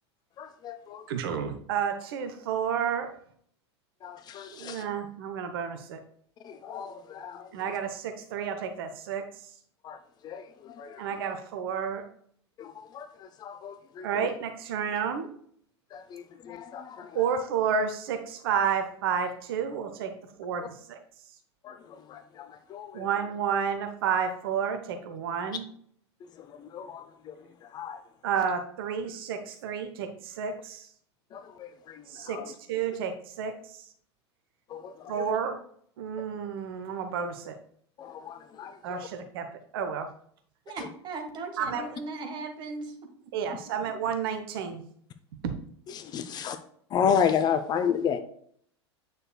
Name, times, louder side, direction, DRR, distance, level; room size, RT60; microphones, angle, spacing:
voice 1, 0.4-1.1 4.0-4.9 6.4-7.5 9.8-10.0 10.2-11.0 12.6-14.3 15.9-17.2 21.6-23.1 26.4-27.4 27.7-28.0 31.3-32.5 34.7-35.3 38.0-39.1 45.9-46.6 46.9-48.2, left 7 dB, 30° left, 10 dB, 0.6 m, -33 dB
voice 2, 1.1-3.1 4.5-6.0 7.5-9.5 11.0-12.0 14.0-15.3 17.1-20.1 20.4-21.0 22.9-25.6 28.2-30.9 32.1-33.9 35.1-35.6 36.0-37.6 38.8-39.5 39.7-40.1 41.6-41.8 43.3-44.8 45.4-45.5, right 7 dB, 55° right, 7 dB, 0.8 m, -31 dB
voice 3, 40.6-42.9 43.2-43.3, right 3 dB, 30° right, 3 dB, 1.6 m, -38 dB
8.7 x 6.5 x 2.2 m, 0.62 s
figure-of-eight pair, 85°, 15 cm